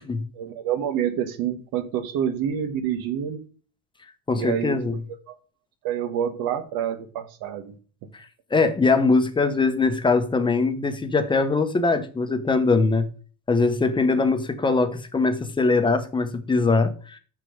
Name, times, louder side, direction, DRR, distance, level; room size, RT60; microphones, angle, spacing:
voice 1, 0.3-3.5 4.4-5.0 5.3-5.4 5.8-7.7 14.1-14.2, right 9 dB, 75° right, 1.3 m, -28 dB
voice 2, 4.3-4.9 8.1-8.2 8.5-13.1 13.5-17.2, left 3 dB, 15° left, 0.9 m, -22 dB
6.4 x 5.9 x 4.9 m
cardioid pair, 140°, 36 cm